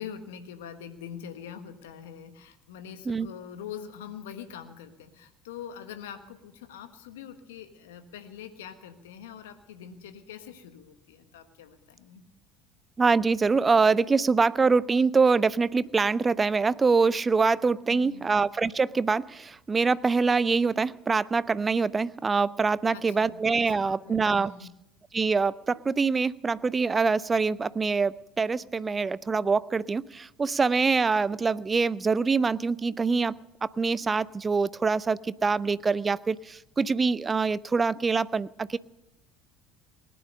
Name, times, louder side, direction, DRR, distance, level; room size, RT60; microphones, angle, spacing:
voice 1, 0.0-12.2 17.9-18.4 22.9-24.7, left 8 dB, 75° left, 9 dB, 1.4 m, -44 dB
voice 2, 13.0-24.5 25.1-33.3 33.6-38.8, right 4 dB, 25° right, 20 dB, 0.5 m, -24 dB
19.5 x 10.0 x 6.5 m, 0.87 s
figure-of-eight pair, 65°, 0 cm